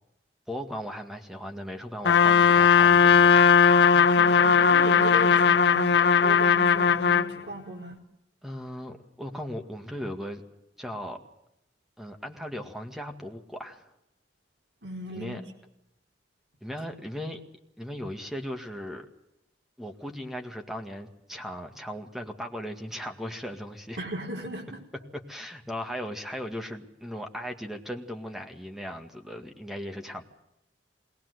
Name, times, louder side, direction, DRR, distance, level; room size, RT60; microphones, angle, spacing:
voice 1, 0.5-3.4 8.4-10.4 10.8-11.2 12.0-13.9 15.1-15.4 16.6-17.4 17.8-19.1 19.8-24.0 25.3-30.2, equal, ahead, 4 dB, 2.0 m, -37 dB
Trumpet, 2.0-7.3, left 6 dB, 80° left, 1.0 m, -18 dB
voice 2, 4.2-6.0 6.2-8.0 14.8-15.4 24.0-24.8, right 1 dB, 70° right, 2 dB, 4.7 m, -37 dB
21.0 x 19.5 x 8.0 m, 0.83 s
head